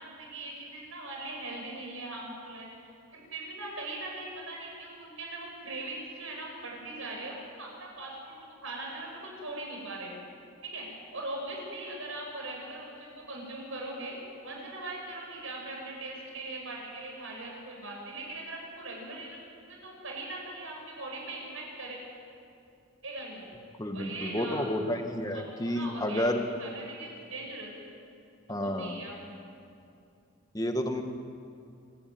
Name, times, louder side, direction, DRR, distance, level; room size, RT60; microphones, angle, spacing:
voice 1, 0.0-8.3 8.6-10.1 10.6-14.2 14.4-19.4 19.7-22.0 23.0-23.4 23.9-24.7 25.3-26.2 26.6-27.7 28.5-29.1, right 2 dB, 70° right, -1 dB, 6.8 m, -40 dB
voice 2, 23.8-26.4 28.5-29.0 30.5-31.0, left 1 dB, 15° left, 5 dB, 1.6 m, -30 dB
27.0 x 14.0 x 9.4 m, 2.6 s
head